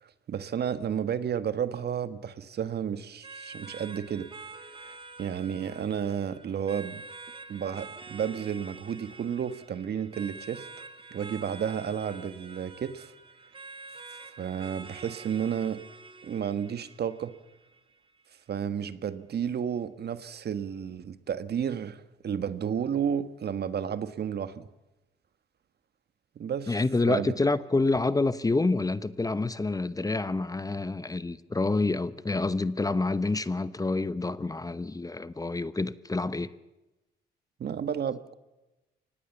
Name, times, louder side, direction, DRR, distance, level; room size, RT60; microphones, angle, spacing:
voice 1, 0.0-4.3 4.8-7.0 7.5-10.7 11.1-13.1 14.4-15.8 16.2-17.3 18.5-24.7 26.3-26.8 27.1-27.3 37.6-38.3, right 8 dB, 55° right, 1.5 m, -32 dB
sound 1, 3.2-18.2, right 3 dB, 25° right, 2.0 m, -47 dB
voice 2, 26.7-36.5, left 3 dB, 20° left, 0.9 m, -28 dB
24.5 x 19.0 x 7.1 m
cardioid pair, 90°, 20 cm